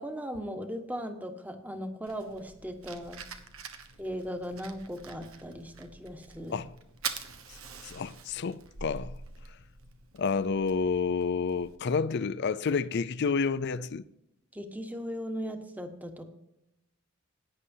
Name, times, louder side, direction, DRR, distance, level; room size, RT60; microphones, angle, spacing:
voice 1, 0.0-3.2 4.0-6.6 14.5-16.2, equal, 10° right, 1.2 m, -38 dB
Fire, 2.1-11.7, right 6 dB, 90° right, 1.2 m, -45 dB
voice 2, 7.8-9.2 10.1-14.0, left 5 dB, 55° left, 0.5 m, -29 dB
17.0 x 9.9 x 2.7 m
head